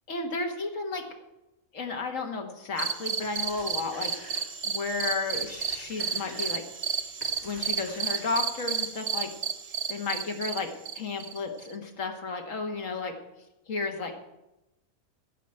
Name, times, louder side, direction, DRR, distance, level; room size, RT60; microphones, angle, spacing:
voice 1, 0.1-1.1 1.7-4.1 4.6-7.0 7.4-9.3 9.9-10.7 11.0-13.2 13.7-14.2, left 4 dB, 65° left, 3 dB, 1.9 m, -33 dB
sound 1, 2.8-11.7, right 6 dB, 55° right, 0.4 m, -32 dB
Telephone, 3.2-4.8 5.1-8.7, left 1 dB, 50° left, 3.3 m, -48 dB
14.5 x 5.2 x 8.8 m, 0.93 s
omnidirectional pair, 1.5 m